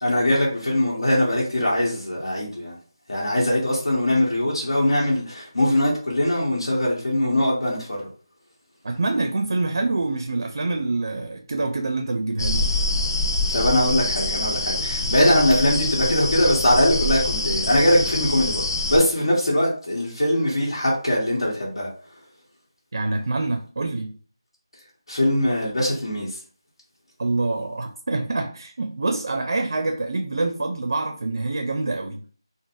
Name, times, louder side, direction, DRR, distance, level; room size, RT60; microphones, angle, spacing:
voice 1, 0.0-2.8 3.1-8.1 13.5-21.9 25.1-26.4, left 1 dB, 80° left, 1.2 m, -21 dB
voice 2, 8.8-12.7 22.9-24.1 27.2-32.2, right 2 dB, 50° right, 0.4 m, -26 dB
sound 1, 12.4-19.0, left 2 dB, 45° left, 0.6 m, -25 dB
3.8 x 2.0 x 2.5 m
figure-of-eight pair, 170°, 3 cm